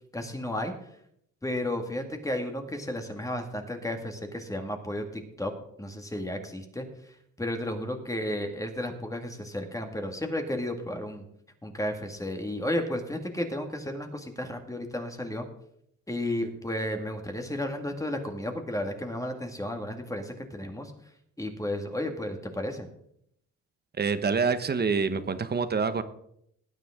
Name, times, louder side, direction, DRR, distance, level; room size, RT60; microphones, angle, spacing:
voice 1, 0.1-0.7 1.4-5.5 5.8-6.9 7.4-11.2 11.6-15.5 16.1-20.9 21.4-22.9, left 1 dB, 10° left, 4 dB, 2.0 m, -33 dB
voice 2, 24.0-26.0, right 5 dB, 35° right, 11 dB, 1.1 m, -26 dB
19.0 x 9.2 x 3.7 m, 0.73 s
cardioid pair, 90°, 30 cm